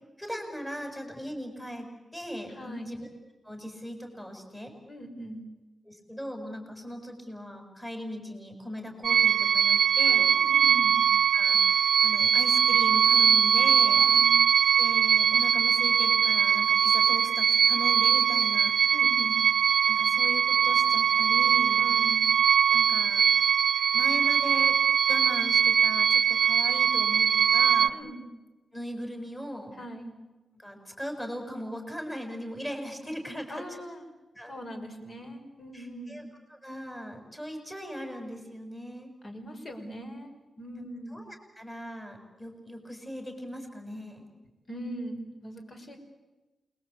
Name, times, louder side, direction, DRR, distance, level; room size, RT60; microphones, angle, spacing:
voice 1, 0.2-3.1 3.4-4.7 5.8-10.3 11.3-11.7 12.0-14.1 14.8-18.8 19.8-21.8 22.7-23.3 23.9-24.8 25.1-27.9 28.7-29.8 30.6-33.8 34.3-34.5 35.7-39.1 40.8-44.3, equal, 10° left, 3 dB, 6.5 m, -39 dB
voice 2, 2.6-3.0 4.9-5.5 10.0-11.0 13.9-14.4 18.9-19.4 21.8-22.3 27.9-28.3 29.8-30.2 33.5-34.1 34.5-36.3 39.2-41.2 44.7-46.0, equal, 40° left, 4 dB, 5.2 m, -41 dB
sound 1, 9.0-27.9, right 8 dB, 75° right, 0.8 m, -22 dB
28.5 x 21.0 x 8.6 m, 1.1 s
wide cardioid pair, 115°, 0 cm